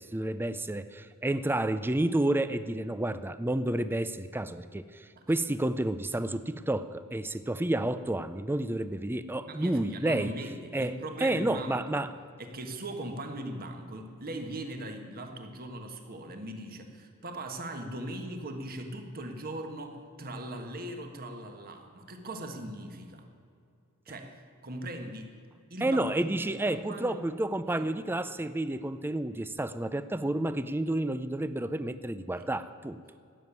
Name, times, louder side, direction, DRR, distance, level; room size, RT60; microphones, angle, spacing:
voice 1, 0.0-10.3 10.7-12.1 25.8-33.0, right 1 dB, 10° right, 13 dB, 0.4 m, -30 dB
voice 2, 9.4-12.0 12.4-23.3 24.0-25.3 25.7-27.2 27.8-27.9 32.4-32.5, right 1 dB, 45° right, 5 dB, 1.5 m, -40 dB
17.0 x 7.4 x 9.5 m, 2.4 s
head